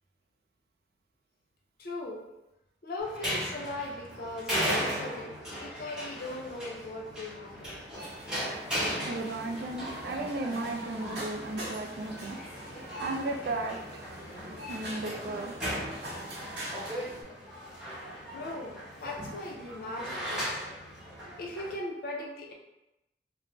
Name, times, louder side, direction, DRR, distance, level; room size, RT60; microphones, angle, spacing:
voice 1, 1.8-2.2 2.8-7.8 10.5-10.6 18.3-20.5 21.4-22.5, left 2 dB, 55° left, 0 dB, 0.5 m, -39 dB
sound 1, 3.0-21.7, equal, 5° right, 0.7 m, -37 dB
sound 2, 7.9-17.2, equal, 75° right, 0.8 m, -44 dB
voice 2, 9.0-12.4 13.0-14.0 14.7-15.5, right 2 dB, 60° right, 3 dB, 0.3 m, -35 dB
2.5 x 2.1 x 3.1 m, 0.95 s
head